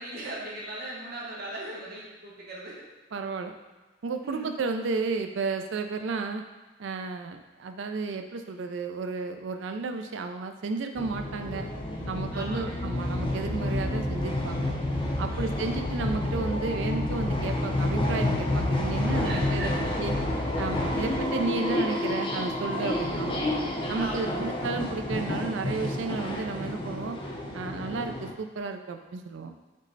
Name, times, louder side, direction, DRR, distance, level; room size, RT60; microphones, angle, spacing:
voice 1, 0.0-2.8 4.2-4.5 12.3-12.8 15.3-15.6 19.2-19.9 20.9-21.3 24.0-24.6, right 1 dB, 50° right, -5 dB, 1.0 m, -39 dB
voice 2, 3.1-3.5 4.0-6.4 6.8-11.7 12.1-14.7 15.2-19.7 20.0-20.1 20.6-23.4 23.9-27.2 27.5-29.5, right 4 dB, 65° right, 6 dB, 0.4 m, -32 dB
sound 1, 11.0-28.3, left 1 dB, 25° left, 0.4 m, -29 dB
5.2 x 2.1 x 3.9 m, 1.3 s
head